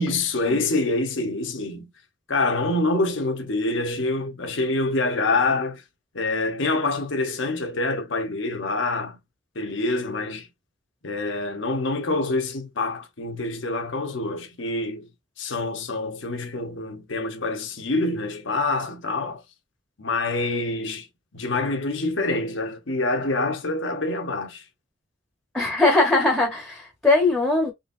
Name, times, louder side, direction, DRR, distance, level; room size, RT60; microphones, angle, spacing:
voice 1, 0.0-1.9 2.3-5.8 6.1-9.2 9.5-10.5 11.0-15.1 15.4-19.4 20.0-21.1 21.3-24.6, left 2 dB, 65° left, 1.0 m, -26 dB
voice 2, 25.5-27.7, left 2 dB, ahead, 1.2 m, -20 dB
4.0 x 3.2 x 2.6 m
head